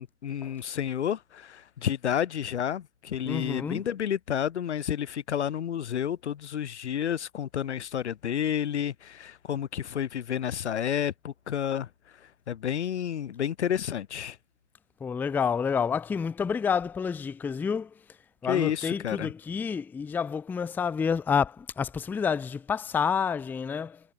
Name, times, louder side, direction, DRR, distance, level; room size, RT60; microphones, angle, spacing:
voice 1, 0.0-11.9 12.5-14.4 18.5-19.3, left 9 dB, 70° left, 0.8 m, -30 dB
voice 2, 3.3-3.8 15.0-17.9 18.4-24.0, left 6 dB, 5° left, 0.6 m, -29 dB
figure-of-eight pair, 120°, 35 cm